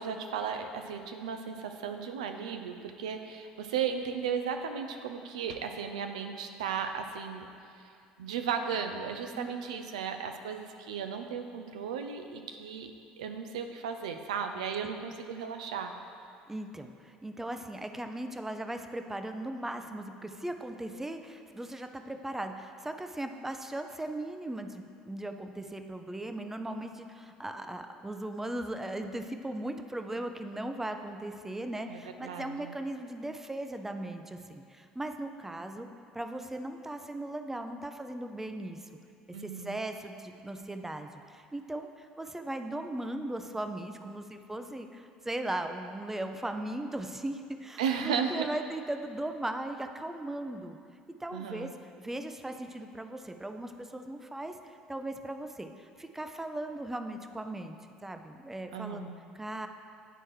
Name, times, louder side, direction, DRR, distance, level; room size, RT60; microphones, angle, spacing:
voice 1, 0.0-7.5 7.8-7.9 8.2-12.9 13.2-15.9 31.9-32.8 39.3-39.8 47.8-48.5 51.3-51.7 58.7-59.2, right 7 dB, 80° right, 6 dB, 0.4 m, -35 dB
voice 2, 16.5-35.9 36.1-38.9 39.4-50.8 51.2-51.7 52.0-57.8 58.0-59.1 59.3-59.7, right 1 dB, 10° right, 6 dB, 0.5 m, -38 dB
9.9 x 4.3 x 3.1 m, 2.4 s
hypercardioid pair, 65°, 4 cm